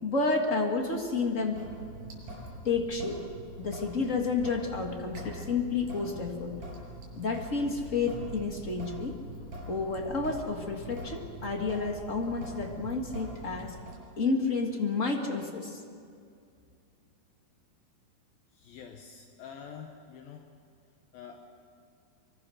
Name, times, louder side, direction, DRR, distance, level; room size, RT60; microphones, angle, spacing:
voice 1, 0.0-1.7 2.6-3.2 3.6-6.6 7.1-9.2 9.7-13.7 14.2-15.8, left 4 dB, 40° left, 2 dB, 1.1 m, -30 dB
Sink (filling or washing) / Drip, 1.5-14.0, right 1 dB, 45° right, 7.9 m, -43 dB
voice 2, 18.5-20.5 21.1-21.6, left 7 dB, 75° left, 4 dB, 2.8 m, -47 dB
24.5 x 24.0 x 6.5 m, 2.4 s
omnidirectional pair, 4.4 m